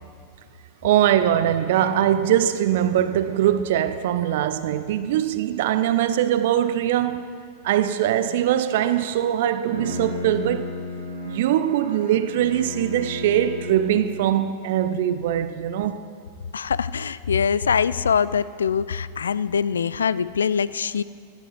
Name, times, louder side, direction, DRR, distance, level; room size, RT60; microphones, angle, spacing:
voice 1, 0.8-7.3 7.6-10.7 11.3-16.1, right 11 dB, 55° right, 0.5 m, -22 dB
Bowed string instrument, 9.5-14.5, left 1 dB, 80° right, 2.8 m, -34 dB
voice 2, 16.5-21.0, left 6 dB, 70° left, 0.3 m, -23 dB
17.5 x 13.5 x 3.1 m
figure-of-eight pair, 90°, 0 cm